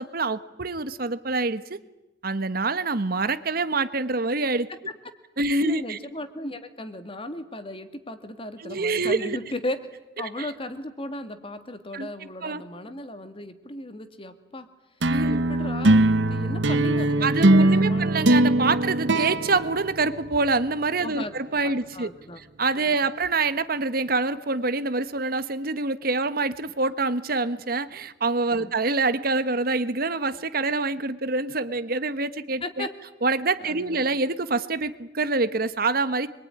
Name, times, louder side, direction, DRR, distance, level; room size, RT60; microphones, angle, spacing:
voice 1, 0.0-1.8 2.2-4.7 5.4-6.0 8.6-9.4 10.4-10.5 11.9-12.1 12.4-12.6 15.1-15.4 17.2-22.1 22.4-32.9 33.2-36.3, right 3 dB, 55° right, 13 dB, 1.2 m, -26 dB
voice 2, 5.6-9.9 10.2-14.7 15.3-18.1 21.0-21.3 21.6-22.4 22.8-22.9 28.5-28.7 32.6-32.9 33.6-34.1, left 1 dB, 30° left, 9 dB, 2.2 m, -36 dB
sound 1, 15.0-20.6, right 2 dB, 85° right, 1.1 m, -21 dB
26.0 x 22.5 x 9.9 m, 1.0 s
head